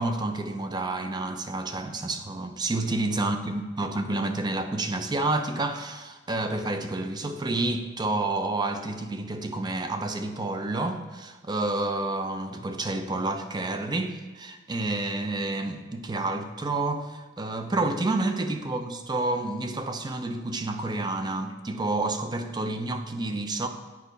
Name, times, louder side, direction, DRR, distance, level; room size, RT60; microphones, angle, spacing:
voice 1, 0.0-23.7, right 2 dB, 20° right, 7 dB, 0.5 m, -29 dB
8.5 x 5.3 x 4.0 m, 1.3 s
head